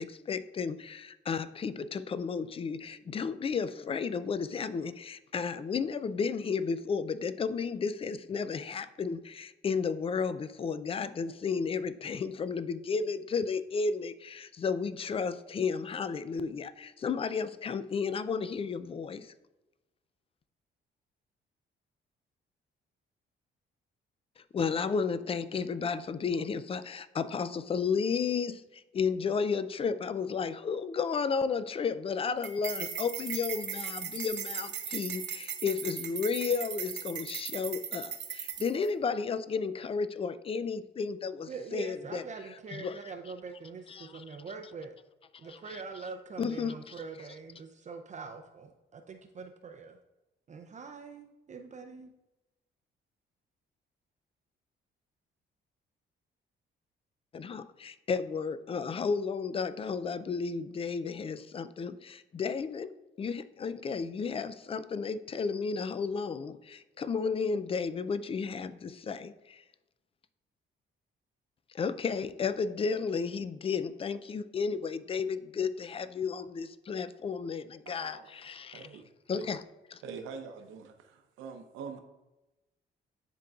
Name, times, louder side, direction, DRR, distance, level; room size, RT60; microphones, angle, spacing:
voice 1, 0.0-19.3 24.5-42.2 42.7-43.0 43.9-44.2 45.7-45.8 46.4-46.9 57.3-69.6 71.7-78.9 79.3-79.6 79.9-80.0, left 5 dB, 30° left, 14 dB, 0.4 m, -33 dB
sound 1, 32.4-38.9, right 8 dB, 65° right, 0.8 m, -38 dB
voice 2, 41.5-45.0 45.4-50.0 50.5-52.1, right 4 dB, 35° right, 5 dB, 0.5 m, -44 dB
voice 3, 77.9-78.3 78.7-79.5 80.0-82.0, right 5 dB, 85° right, 5 dB, 0.8 m, -44 dB
10.5 x 3.8 x 2.4 m, 1.0 s
cardioid pair, 90°, 20 cm